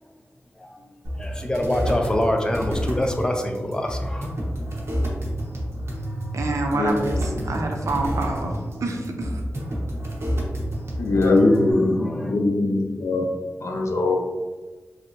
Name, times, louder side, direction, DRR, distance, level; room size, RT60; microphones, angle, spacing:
voice 1, 0.6-0.9 1.2-4.3 11.1-12.3, left 1 dB, 15° left, 3 dB, 0.4 m, -26 dB
sound 1, 1.0-11.7, equal, 55° right, 0.8 m, -29 dB
voice 2, 6.3-7.2 7.4-9.4, right 3 dB, 90° right, 2 dB, 0.4 m, -27 dB
voice 3, 10.9-13.3 13.6-14.1, left 2 dB, 70° left, 3 dB, 0.5 m, -21 dB
3.2 x 2.8 x 2.6 m, 1.2 s
wide cardioid pair, 115°, 5 cm